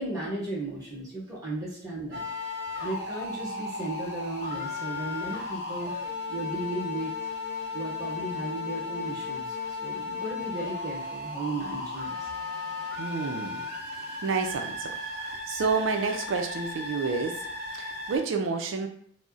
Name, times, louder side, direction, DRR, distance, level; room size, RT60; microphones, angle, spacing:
voice 1, 0.0-2.2 2.8-5.9 6.3-7.1 7.7-12.3, right 2 dB, 20° right, -6 dB, 1.2 m, -35 dB
sound 1, 2.1-18.2, left 3 dB, 55° right, 0.8 m, -35 dB
voice 2, 13.0-13.7 13.9-17.5 17.7-18.9, right 4 dB, 80° right, 4 dB, 0.4 m, -30 dB
3.8 x 2.0 x 2.4 m, 0.62 s
head